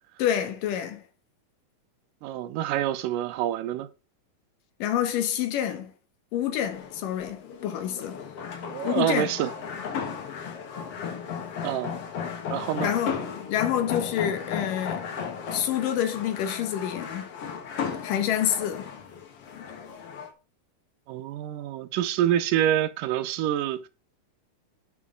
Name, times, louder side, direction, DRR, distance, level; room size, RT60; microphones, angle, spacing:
voice 1, 0.2-1.0 4.8-5.9 6.3-8.2 8.8-9.3 12.8-13.2 13.5-15.1 15.5-17.3 18.0-18.9, left 10 dB, 80° left, 2.7 m, -27 dB
voice 2, 2.2-3.9 8.6-9.5 11.6-11.9 12.5-12.9 21.1-23.9, right 11 dB, 85° right, 2.2 m, -27 dB
sound 1, 6.6-20.3, left 7 dB, 55° left, 1.9 m, -35 dB
9.1 x 6.1 x 3.7 m
omnidirectional pair, 3.9 m